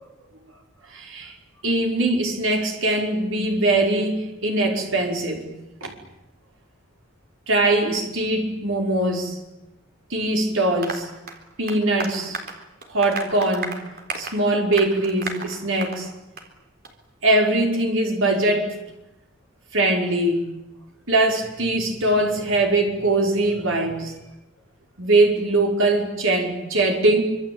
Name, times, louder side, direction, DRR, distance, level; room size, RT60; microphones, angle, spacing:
voice 1, 0.9-1.3 1.6-5.5 5.8-5.9 7.5-9.4 10.1-11.1 11.6-12.4 12.9-13.8 14.2-16.1 17.2-18.8 19.7-20.4 21.1-24.1 25.0-27.2, right 2 dB, 65° right, 2 dB, 5.4 m, -21 dB
Applause, 10.8-16.0 16.4-16.5 16.8-16.9 17.3-17.4, right 3 dB, 45° right, 4.0 m, -34 dB
25.5 x 25.5 x 8.9 m, 0.98 s
head